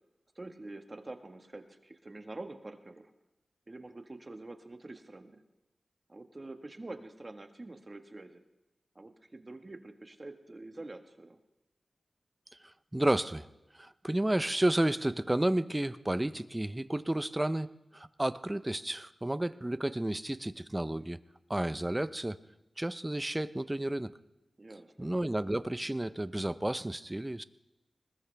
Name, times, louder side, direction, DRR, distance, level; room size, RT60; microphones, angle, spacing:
voice 1, 0.3-3.1 3.7-5.4 6.1-8.4 8.9-11.4 24.6-25.1, right 2 dB, 40° right, 6 dB, 1.6 m, -46 dB
voice 2, 12.6-13.5 13.7-21.2 21.5-22.4 22.8-24.1 25.0-27.4, right 1 dB, 20° right, 14 dB, 0.7 m, -31 dB
20.5 x 20.0 x 3.5 m, 0.98 s
wide cardioid pair, 60°, 0 cm